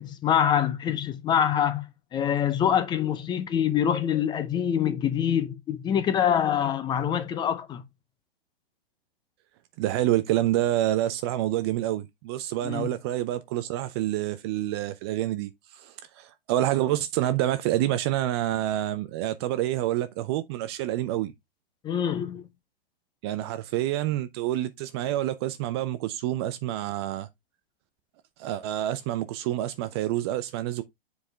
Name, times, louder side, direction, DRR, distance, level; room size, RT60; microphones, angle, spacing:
voice 1, 0.0-7.8 12.6-12.9 21.8-22.4, left 9 dB, 15° left, 0.7 m, -25 dB
voice 2, 9.8-21.3 23.2-27.3 28.4-30.8, right 13 dB, 25° right, 0.5 m, -27 dB
7.6 x 4.7 x 3.3 m
figure-of-eight pair, 120°, 30 cm